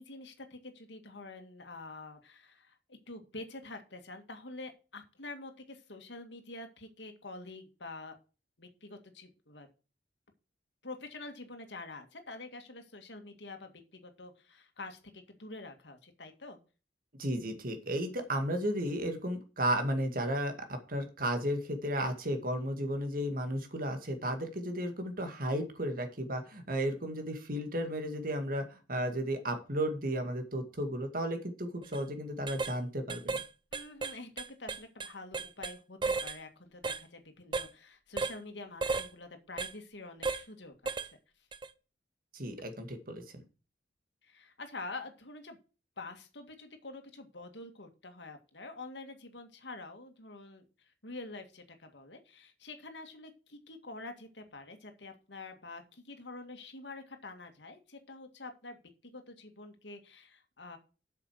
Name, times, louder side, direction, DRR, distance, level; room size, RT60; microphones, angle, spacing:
voice 1, 0.0-8.2 8.6-9.7 10.8-16.6 33.7-41.1 44.2-45.6 46.0-50.6 51.0-60.8, left 2 dB, 75° left, 6 dB, 2.1 m, -47 dB
voice 2, 17.2-33.4 42.3-43.2, right 1 dB, 50° right, 6 dB, 2.1 m, -34 dB
sound 1, 31.8-32.0 32.5-32.7 33.1-33.5 33.7-35.7 36.0-36.4 36.8-37.0 37.5-37.7 38.2-38.4 38.8-39.1 39.6-39.7 40.2-40.4 40.9-41.1 41.5-41.7, right 4 dB, 25° right, 0.6 m, -34 dB
8.2 x 6.6 x 6.5 m, 0.34 s
head